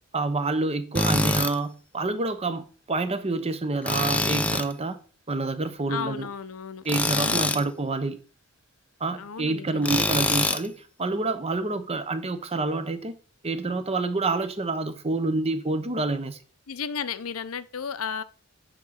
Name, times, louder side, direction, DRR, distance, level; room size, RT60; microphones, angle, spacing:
voice 1, 0.1-5.0 5.3-6.3 6.8-8.2 9.0-13.1 13.4-16.4, right 3 dB, 30° right, 0.9 m, -28 dB
Tools, 1.0-1.5 3.9-4.7 6.9-7.6 9.8-10.7, left 2 dB, 5° left, 0.5 m, -24 dB
voice 2, 5.9-6.8 7.2-7.7 9.2-10.1 16.7-18.2, left 6 dB, 75° left, 0.7 m, -34 dB
9.1 x 3.9 x 6.5 m
head